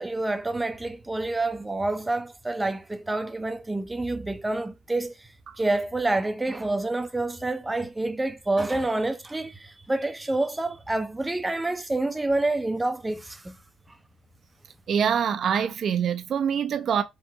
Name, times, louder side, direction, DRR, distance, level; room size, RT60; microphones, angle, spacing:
voice 1, 0.0-5.3 5.6-13.6, right 2 dB, 15° right, 0.6 m, -28 dB
voice 2, 14.9-17.0, right 7 dB, 60° right, 0.6 m, -25 dB
3.6 x 2.5 x 2.8 m
cardioid pair, 90°, 0 cm